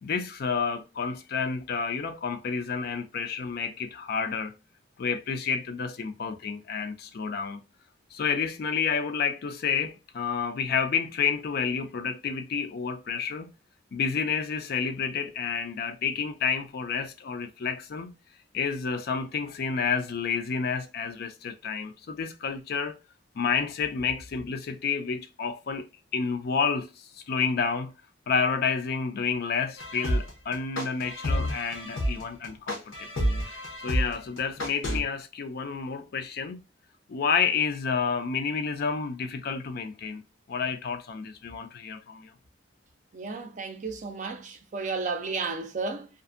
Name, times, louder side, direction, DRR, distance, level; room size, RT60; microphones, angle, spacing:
voice 1, 0.0-4.5 5.0-7.6 8.1-13.5 13.9-18.1 18.5-22.9 23.4-25.9 26.1-27.9 28.3-33.1 33.8-36.6 37.1-40.2 40.5-42.3, left 6 dB, 55° left, 0.4 m, -30 dB
sound 1, 29.8-35.0, equal, 90° left, 0.8 m, -29 dB
voice 2, 43.1-46.1, right 4 dB, 40° right, 0.4 m, -33 dB
2.6 x 2.5 x 2.4 m
head